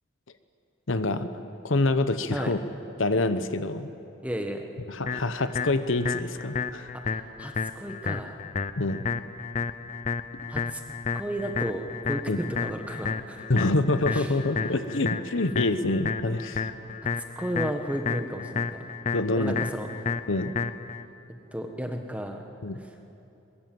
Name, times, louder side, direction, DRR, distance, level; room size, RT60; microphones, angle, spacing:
voice 1, 0.9-1.3 1.6-2.6 3.0-3.9 4.9-6.9 8.8-9.0 12.3-12.4 13.5-16.7 19.1-19.6 20.3-20.5 22.6-22.8, left 2 dB, 70° left, 10 dB, 1.0 m, -26 dB
voice 2, 4.2-4.6 7.0-8.4 10.5-10.8 11.1-13.5 14.1-14.3 17.0-17.1 17.3-18.8 19.4-19.9 21.5-22.4 22.7-22.9, equal, 5° right, 4 dB, 1.5 m, -33 dB
sound 1, 5.1-21.0, left 5 dB, 35° left, 0.6 m, -32 dB
22.5 x 22.0 x 7.8 m, 2.9 s
head